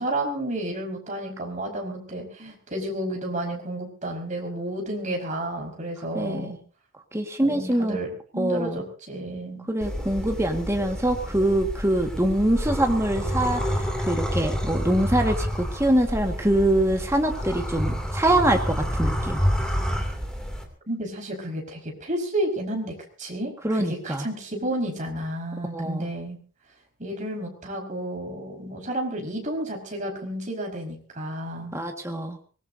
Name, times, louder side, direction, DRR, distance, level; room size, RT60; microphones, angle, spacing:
voice 1, 0.0-6.6 7.4-9.6 20.9-26.4 27.0-31.8, right 1 dB, 35° right, 1 dB, 5.4 m, -31 dB
voice 2, 6.1-6.5 7.1-8.0 8.4-8.8 9.7-19.4 23.6-24.2 25.7-26.1 31.7-32.4, right 1 dB, 15° right, 3 dB, 1.8 m, -24 dB
sound 1, 9.8-20.6, equal, 5° left, 2.8 m, -28 dB
24.0 x 19.5 x 2.8 m, 0.39 s
head